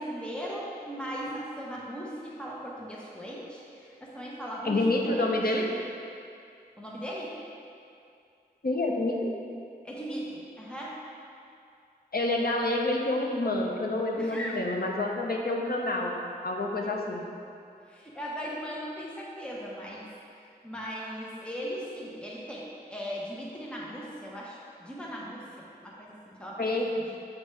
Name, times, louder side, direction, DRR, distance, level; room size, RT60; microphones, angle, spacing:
voice 1, 0.0-5.5 6.8-7.4 9.8-11.0 14.2-14.6 16.8-16.9 17.8-20.1 20.4-27.2, equal, 5° left, -5 dB, 0.9 m, -38 dB
voice 2, 4.6-5.6 8.6-9.3 12.1-17.2 26.6-26.9, left 2 dB, 60° left, 0 dB, 0.7 m, -28 dB
7.9 x 4.2 x 3.3 m, 2.5 s
wide cardioid pair, 60°, 17 cm